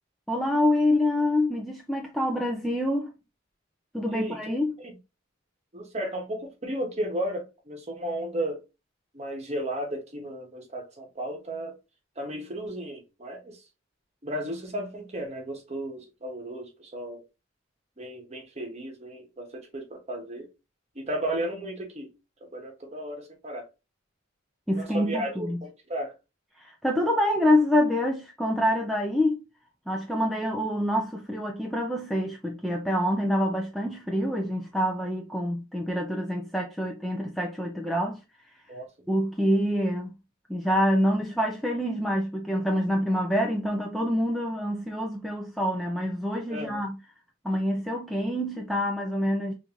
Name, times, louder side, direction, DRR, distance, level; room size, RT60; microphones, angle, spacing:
voice 1, 0.3-3.1 3.9-4.8 24.7-25.6 26.6-29.4 29.9-38.2 39.1-40.1 40.5-47.0 47.4-49.5, left 1 dB, ahead, 0.3 m, -26 dB
voice 2, 4.1-4.4 4.8-4.9 5.7-8.6 9.1-11.8 12.2-13.6 14.2-17.3 18.0-20.5 20.9-22.1 22.4-23.7 24.7-25.5 25.9-26.1 38.7-38.9 46.5-46.8, right 1 dB, 30° right, 0.9 m, -34 dB
3.5 x 2.6 x 2.9 m
head